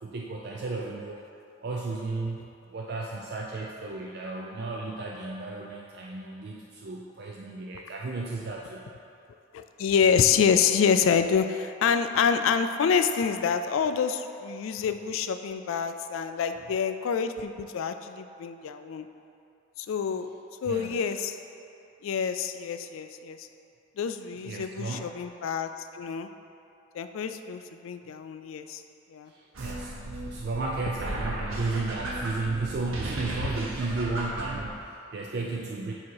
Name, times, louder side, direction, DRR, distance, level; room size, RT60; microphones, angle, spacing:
voice 1, 0.0-1.2 1.6-8.8 20.7-21.0 24.4-25.1 29.3-35.9, right 3 dB, 50° right, -2 dB, 0.4 m, -34 dB
voice 2, 9.5-19.1 19.8-20.3 20.6-21.3 22.0-23.5 24.0-26.3 26.9-28.8 29.1-29.3, left 6 dB, 75° left, 9 dB, 0.3 m, -27 dB
sound 1, 29.5-34.7, right 1 dB, 85° right, 1.0 m, -35 dB
8.4 x 2.9 x 4.6 m, 2.7 s
head